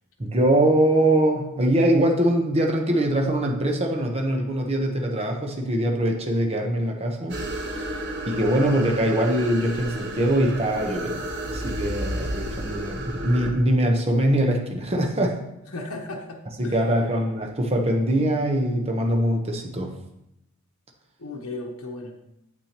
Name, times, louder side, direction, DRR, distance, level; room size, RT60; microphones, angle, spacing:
voice 1, 0.2-7.4 8.3-11.2 11.5-15.4 16.6-19.9, right 1 dB, 30° right, 1 dB, 0.9 m, -22 dB
sound 1, 7.3-13.5, right 1 dB, 50° right, 1.1 m, -32 dB
voice 2, 15.7-16.7 21.2-22.2, left 2 dB, 70° left, 0 dB, 1.0 m, -35 dB
8.9 x 8.2 x 2.9 m, 0.86 s
head